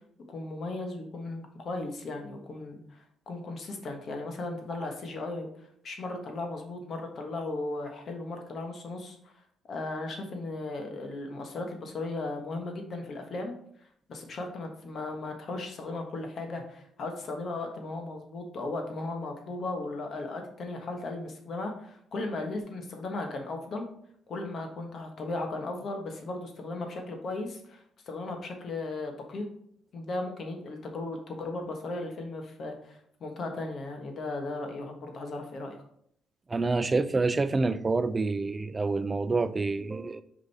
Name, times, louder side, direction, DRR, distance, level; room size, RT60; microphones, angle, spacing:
voice 1, 0.3-9.3 9.7-13.5 14.1-23.9 24.3-29.5 29.9-35.8, left 2 dB, 55° left, 4 dB, 1.4 m, -36 dB
voice 2, 36.5-40.2, right 3 dB, 25° right, 12 dB, 0.4 m, -27 dB
5.2 x 5.1 x 4.2 m, 0.69 s
cardioid pair, 90°, 0 cm